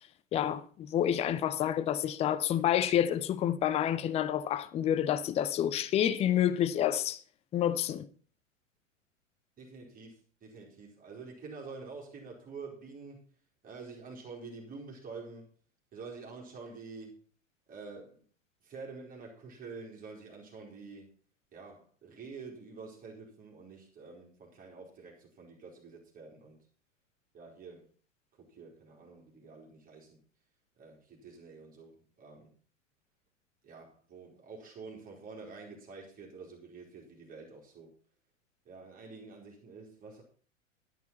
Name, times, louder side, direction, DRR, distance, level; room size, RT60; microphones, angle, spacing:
voice 1, 0.3-7.2 7.5-8.1, left 10 dB, 15° left, 0.6 m, -28 dB
voice 2, 9.6-13.2 13.6-15.5 15.9-17.2 17.7-18.2 18.6-21.1 21.5-26.6 27.3-27.9 28.3-30.2 30.8-32.5 33.6-37.9 38.6-40.2, right 4 dB, 20° right, 3.4 m, -48 dB
11.5 x 9.4 x 4.3 m
figure-of-eight pair, 100°, 39 cm